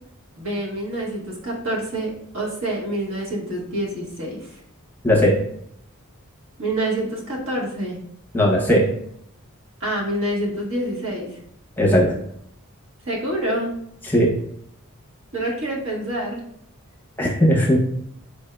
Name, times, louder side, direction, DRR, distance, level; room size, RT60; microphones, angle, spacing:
voice 1, 0.4-4.5 6.6-8.0 9.8-11.4 13.1-13.7 15.3-16.4, right 1 dB, 65° right, -3 dB, 1.3 m, -27 dB
voice 2, 5.0-5.4 8.3-8.9 11.8-12.1 14.1-14.3 17.2-17.8, equal, 10° left, -3 dB, 0.8 m, -17 dB
4.3 x 3.5 x 2.3 m, 0.70 s
head